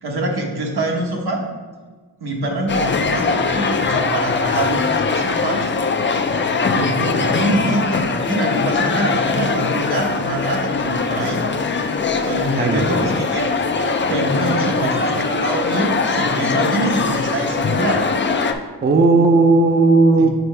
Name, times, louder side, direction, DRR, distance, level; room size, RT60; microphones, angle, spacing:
voice 1, 0.0-1.4 2.2-5.7 6.7-11.4 12.2-13.5 14.1-18.1 20.2-20.3, right 1 dB, 75° right, 0 dB, 1.1 m, -24 dB
sound 1, 2.7-18.5, left 4 dB, 30° left, 0.4 m, -21 dB
voice 2, 12.6-13.1 18.8-20.3, right 3 dB, 25° right, 4 dB, 0.5 m, -15 dB
6.8 x 4.5 x 3.3 m, 1.4 s
wide cardioid pair, 100°, 39 cm